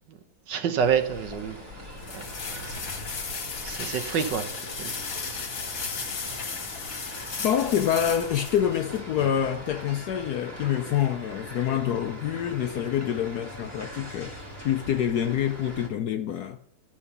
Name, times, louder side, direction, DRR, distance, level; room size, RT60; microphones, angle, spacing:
voice 1, 0.5-1.6 2.1-2.9 3.6-4.5 4.8-4.9, right 7 dB, 65° right, 1.4 m, -28 dB
sound 1, 0.8-15.9, right 1 dB, 10° right, 2.0 m, -42 dB
sound 2, 1.2-9.0, left 5 dB, 45° left, 1.7 m, -35 dB
voice 2, 7.4-14.4 14.6-16.6, left 9 dB, 70° left, 1.0 m, -26 dB
11.0 x 5.9 x 6.8 m
omnidirectional pair, 2.2 m